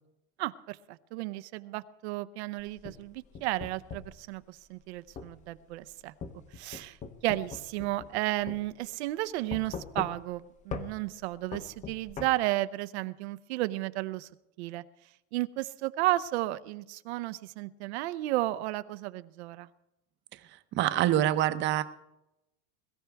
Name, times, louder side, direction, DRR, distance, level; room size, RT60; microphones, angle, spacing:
voice 1, 0.4-6.1 6.5-7.0 7.2-14.3 14.6-14.8 15.3-19.7, right 17 dB, 85° right, 14 dB, 0.7 m, -33 dB
sound 1, 2.6-4.2 5.2-5.3 6.2-8.2 8.5-8.6 9.5-10.4 10.7-10.9 11.5-12.3, left 5 dB, 20° left, 0.8 m, -40 dB
voice 2, 20.3-21.8, right 12 dB, 35° right, 12 dB, 0.7 m, -26 dB
22.0 x 14.0 x 3.5 m, 0.89 s
supercardioid pair, 160°, 32 cm